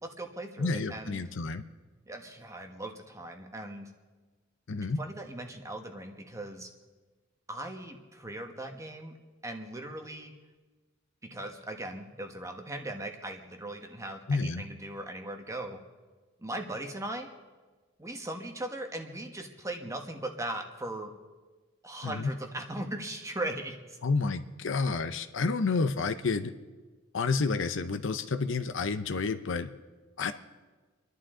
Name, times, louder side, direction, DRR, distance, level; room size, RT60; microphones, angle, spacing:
voice 1, 0.0-1.2 2.1-3.9 5.0-6.7 7.5-9.1 9.4-10.3 11.3-15.8 16.4-17.3 18.0-21.1 21.8-24.0, right 1 dB, 15° right, 4 dB, 1.3 m, -39 dB
voice 2, 0.6-1.6 4.7-5.0 14.3-14.6 22.0-22.3 24.0-26.5 27.1-29.7 30.2-30.3, left 4 dB, 65° left, 10 dB, 0.7 m, -30 dB
29.0 x 11.5 x 3.8 m, 1.3 s
head